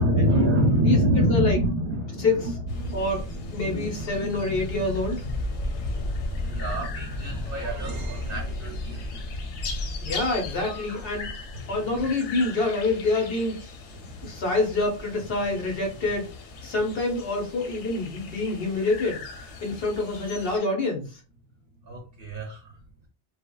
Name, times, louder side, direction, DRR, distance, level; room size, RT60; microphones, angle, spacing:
voice 1, 0.0-10.1 11.5-12.1 14.0-14.5 21.8-22.7, equal, 60° right, -1 dB, 0.8 m, -28 dB
voice 2, 0.8-1.6 2.2-2.3 2.9-3.2 3.5-5.2 10.0-11.3 11.7-13.6 14.2-16.3 16.6-19.2 19.6-21.2, left 2 dB, 60° left, 1 dB, 1.0 m, -26 dB
sound 1, 2.7-20.6, left 2 dB, 90° left, 0.9 m, -36 dB
sound 2, 7.0-9.2, right 2 dB, 90° right, 0.9 m, -41 dB
3.2 x 2.1 x 2.2 m, 0.36 s
omnidirectional pair, 1.2 m